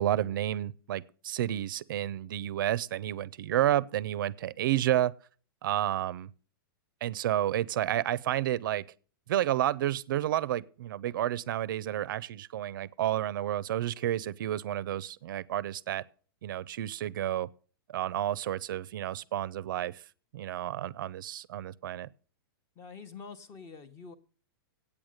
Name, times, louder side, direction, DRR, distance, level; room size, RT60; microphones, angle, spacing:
voice 1, 0.0-5.1 5.6-6.3 7.0-8.8 9.3-16.0 16.4-17.5 17.9-20.0 20.3-22.1, right 12 dB, 60° right, 0.5 m, -30 dB
voice 2, 22.8-24.1, left 5 dB, 25° left, 0.9 m, -46 dB
8.8 x 8.6 x 6.4 m
hypercardioid pair, 160°, 12 cm